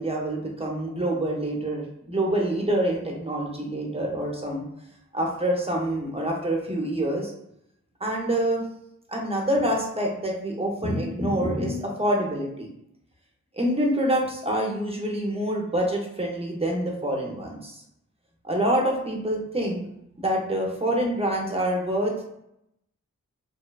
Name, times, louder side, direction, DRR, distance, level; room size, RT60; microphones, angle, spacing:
voice 1, 0.0-4.6 5.1-7.3 8.0-8.6 9.1-12.7 13.5-17.8 18.4-19.8 20.2-22.3, right 1 dB, 20° right, -1 dB, 0.6 m, -26 dB
2.7 x 2.1 x 2.2 m, 0.78 s
wide cardioid pair, 80°, 32 cm